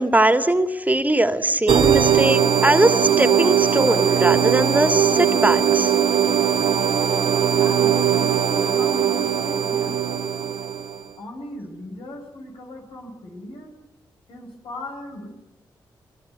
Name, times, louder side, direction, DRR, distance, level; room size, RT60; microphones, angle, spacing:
voice 1, 0.0-5.9, right 1 dB, 20° right, 9 dB, 2.5 m, -20 dB
sound 1, 1.7-11.0, right 8 dB, 85° right, 2.1 m, -20 dB
voice 2, 7.6-10.0 11.2-13.7 14.3-15.3, left 1 dB, 85° left, 2 dB, 7.7 m, -38 dB
23.0 x 21.0 x 9.6 m, 0.88 s
supercardioid pair, 45°, 9 cm